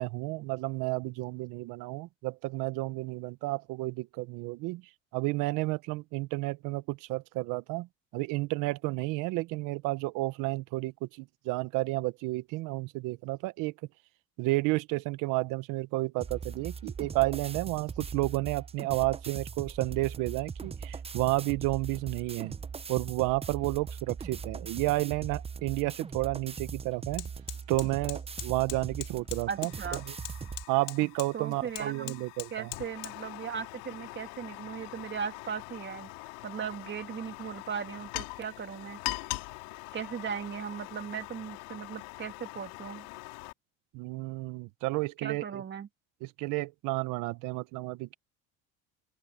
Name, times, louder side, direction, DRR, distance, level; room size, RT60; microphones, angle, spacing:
voice 1, 0.0-4.8 5.1-7.9 8.1-13.7 14.4-22.5 22.9-27.3 27.7-30.1 30.7-32.7 43.9-45.6 46.2-48.1, right 21 dB, 75° right, 1.2 m, -31 dB
sound 1, 16.2-30.6, right 5 dB, 20° right, 0.8 m, -40 dB
Fire, 26.0-26.2 26.5-43.5, left 25 dB, 85° left, 3.9 m, -42 dB
voice 2, 29.5-30.0 31.3-32.2 32.5-36.1 36.4-39.0 39.9-43.1 45.2-45.9, right 7 dB, 35° right, 2.7 m, -38 dB
open air
supercardioid pair, 105°, 32 cm